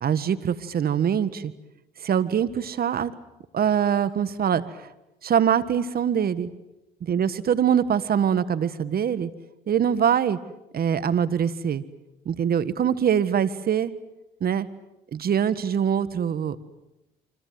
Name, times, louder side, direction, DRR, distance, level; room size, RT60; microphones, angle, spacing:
voice 1, 0.0-1.5 2.0-3.1 3.5-4.6 5.2-6.5 7.0-9.3 9.7-10.4 10.7-11.8 12.3-13.9 14.4-14.7 15.1-16.6, right 8 dB, 55° right, 14 dB, 1.7 m, -23 dB
27.0 x 25.0 x 7.8 m, 0.94 s
supercardioid pair, 65°, 19 cm